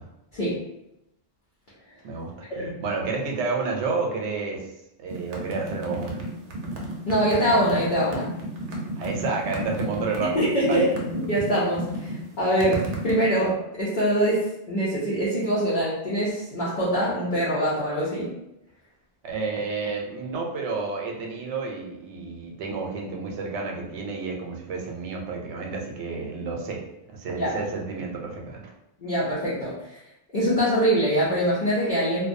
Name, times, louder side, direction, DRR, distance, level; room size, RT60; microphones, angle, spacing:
voice 1, 2.8-4.7 5.0-6.2 9.0-10.8 19.2-26.8 27.1-28.7, right 4 dB, 90° right, 0 dB, 0.9 m, -30 dB
sound 1, 5.1-13.2, right 1 dB, 60° right, 0.6 m, -32 dB
voice 2, 7.1-8.3 10.3-10.9 11.3-18.3 27.3-27.6 29.0-30.0 30.3-32.3, equal, 50° left, -9 dB, 0.7 m, -24 dB
2.2 x 2.2 x 2.5 m, 0.86 s
omnidirectional pair, 1.1 m